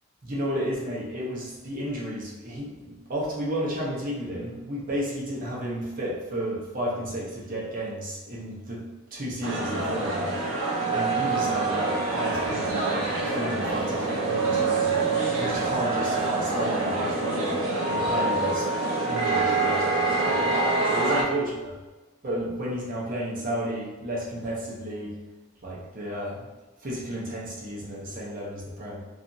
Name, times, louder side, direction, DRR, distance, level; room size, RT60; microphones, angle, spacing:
voice 1, 0.2-8.8 9.1-10.5 10.9-15.0 15.4-17.6 17.9-18.7 19.1-20.4 20.9-21.7 22.2-25.2 25.6-26.5 26.8-29.0, equal, 40° right, -4 dB, 0.6 m, -32 dB
sound 1, 9.4-21.2, right 3 dB, 80° right, 0.7 m, -26 dB
2.8 x 2.3 x 2.5 m, 1.2 s
head